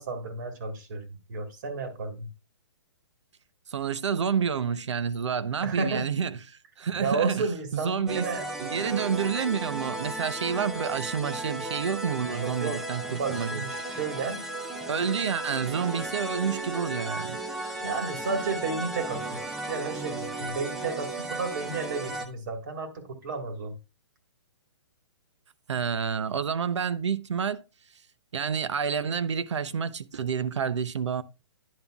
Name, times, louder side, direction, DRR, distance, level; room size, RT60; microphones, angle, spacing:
voice 1, 0.0-2.3 5.6-6.1 7.0-8.5 12.4-14.4 17.8-19.4 19.7-23.8, right 4 dB, 40° right, 1.8 m, -32 dB
voice 2, 3.7-8.3 8.6-13.6 14.9-17.4 25.7-27.6 28.3-31.2, right 7 dB, 80° right, 0.7 m, -29 dB
sound 1, 8.1-22.3, right 2 dB, 5° right, 0.3 m, -35 dB
10.5 x 5.3 x 2.4 m
hypercardioid pair, 165°, 15 cm